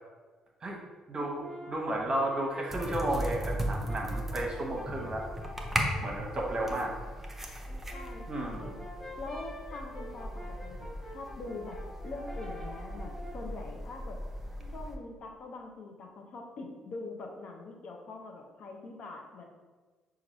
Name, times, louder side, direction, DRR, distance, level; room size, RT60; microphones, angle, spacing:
Brass instrument, 1.1-6.7 7.7-13.5, equal, 15° left, 1.1 m, -47 dB
voice 1, 1.1-5.2 6.0-6.9 8.3-8.7, right 1 dB, 35° right, -1 dB, 0.9 m, -33 dB
sound 1, 2.7-15.0, equal, 10° right, 0.7 m, -38 dB
voice 2, 6.3-6.8 7.9-8.8 9.2-11.8 12.0-14.2 14.7-19.4, left 3 dB, 55° left, 2 dB, 0.6 m, -44 dB
5.8 x 2.4 x 3.0 m, 1.3 s
figure-of-eight pair, 45°, 2 cm